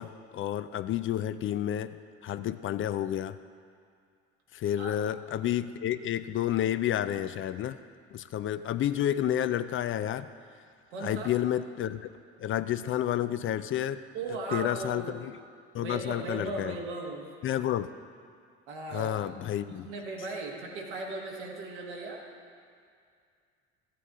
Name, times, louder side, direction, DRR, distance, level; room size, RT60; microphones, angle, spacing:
voice 1, 0.0-2.0 2.2-3.4 4.5-7.8 8.1-10.3 11.0-12.0 12.4-14.0 14.5-15.3 15.7-16.8 17.4-17.9 18.9-19.9, left 11 dB, 40° left, 13 dB, 0.4 m, -30 dB
voice 2, 10.9-11.3 14.1-15.2 15.7-17.3 18.7-19.3 19.7-22.3, right 3 dB, 80° right, -1 dB, 1.7 m, -37 dB
13.5 x 8.5 x 3.7 m, 2.2 s
hypercardioid pair, 60°, 34 cm